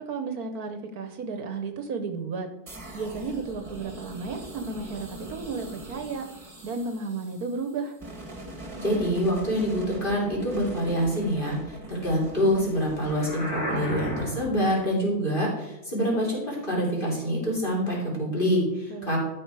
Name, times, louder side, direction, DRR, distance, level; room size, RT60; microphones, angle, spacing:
voice 1, 0.0-2.5 2.9-6.3 6.6-8.0 18.9-19.2, right 4 dB, 65° right, 7 dB, 1.3 m, -33 dB
sound 1, 2.7-14.4, right 1 dB, 20° right, 1.6 m, -42 dB
voice 2, 8.8-19.2, equal, 30° left, -4 dB, 3.5 m, -26 dB
sound 2, 13.0-14.6, equal, 65° left, 2.7 m, -32 dB
12.5 x 5.3 x 4.7 m, 0.94 s
omnidirectional pair, 1.7 m